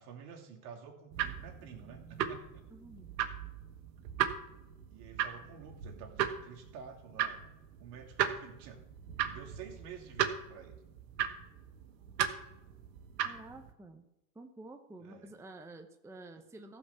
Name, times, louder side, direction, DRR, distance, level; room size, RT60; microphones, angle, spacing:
voice 1, 0.0-2.6 4.9-7.5 7.8-8.8 9.2-10.7 15.0-15.3, right 7 dB, 65° right, 0 dB, 3.0 m, -50 dB
sound 1, 1.1-13.7, right 9 dB, 85° right, 1.4 m, -37 dB
voice 2, 2.7-3.1 13.2-14.1 14.3-16.8, right 2 dB, 5° right, 6 dB, 0.8 m, -50 dB
15.0 x 5.3 x 7.0 m, 0.95 s
hypercardioid pair, 100°, 49 cm